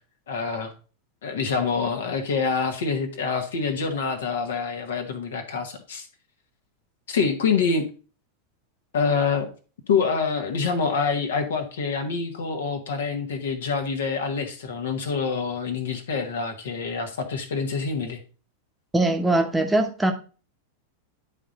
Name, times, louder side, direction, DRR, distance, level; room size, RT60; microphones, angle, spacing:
voice 1, 0.3-0.7 1.2-6.1 7.1-7.9 8.9-9.5 9.9-18.2, left 5 dB, 60° left, 1.4 m, -26 dB
voice 2, 18.9-20.1, right 2 dB, 10° right, 1.0 m, -21 dB
11.0 x 3.8 x 4.0 m
figure-of-eight pair, 90°, 0 cm